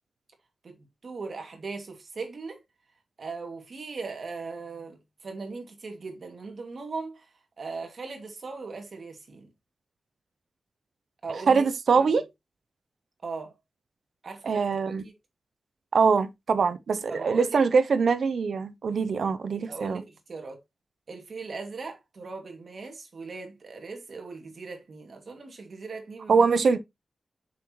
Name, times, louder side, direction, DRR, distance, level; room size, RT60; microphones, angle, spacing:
voice 1, 1.0-2.6 3.2-7.3 7.6-9.5 11.2-11.6 11.9-12.1 13.2-13.5 14.2-14.9 17.1-17.6 19.5-20.6 21.1-26.5, right 4 dB, 55° right, 2.3 m, -39 dB
voice 2, 11.5-12.2 14.4-15.0 15.9-20.0 26.3-26.8, right 5 dB, 75° right, 0.7 m, -23 dB
7.4 x 6.1 x 3.0 m
wide cardioid pair, 135°, 0 cm